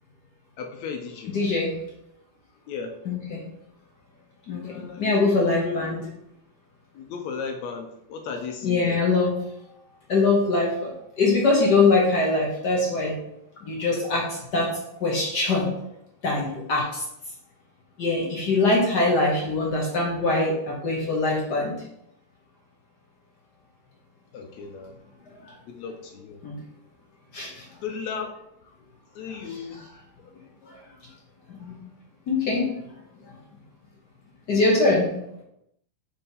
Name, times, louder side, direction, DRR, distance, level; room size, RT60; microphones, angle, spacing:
voice 1, 0.6-1.4 2.7-2.9 4.6-5.9 7.0-9.0 24.3-24.9 25.7-26.4 27.8-28.4 28.6-28.7 29.2-29.9, left 6 dB, 80° left, 4 dB, 1.9 m, -35 dB
voice 2, 1.3-1.7 3.0-3.4 4.5-6.0 8.6-9.3 10.1-10.9 11.2-13.2 13.6-14.7 15.0-15.7 16.2-17.0 18.0-21.7 25.5-25.6 26.4-26.6 27.3-27.6 29.5-29.9 30.6-30.8 31.5-31.8 32.3-32.7 34.5-35.1, left 3 dB, 65° left, -3 dB, 1.0 m, -23 dB
4.4 x 4.4 x 5.3 m, 0.81 s
omnidirectional pair, 3.3 m